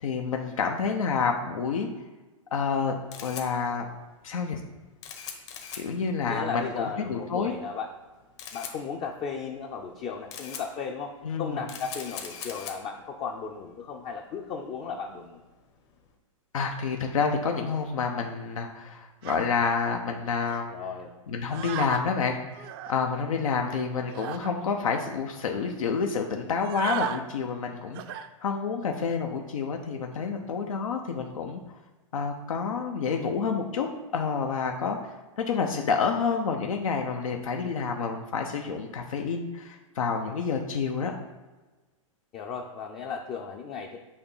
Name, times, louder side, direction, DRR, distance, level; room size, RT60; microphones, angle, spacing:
voice 1, 0.0-1.9 2.5-3.8 4.2-4.6 5.7-7.5 11.2-11.6 16.5-20.7 21.3-22.4 22.9-28.0 28.4-31.6 32.1-33.9 34.1-41.2, left 5 dB, 85° left, 3 dB, 0.7 m, -29 dB
Camera, 2.7-16.1, left 7 dB, 55° left, 1.2 m, -44 dB
voice 2, 6.2-7.9 8.5-11.1 11.4-15.4 20.7-21.1 42.3-44.0, left 6 dB, 30° left, 2 dB, 0.5 m, -35 dB
sound 1, 19.2-19.5 20.5-20.6 21.5-22.0 22.5-23.0 24.1-24.5 25.1-25.2 25.4-25.7 26.5-27.2 27.9-28.3 28.8-29.1, right 9 dB, 45° right, 0.5 m, -36 dB
6.4 x 2.9 x 5.5 m, 1.2 s
hypercardioid pair, 130°, 17 cm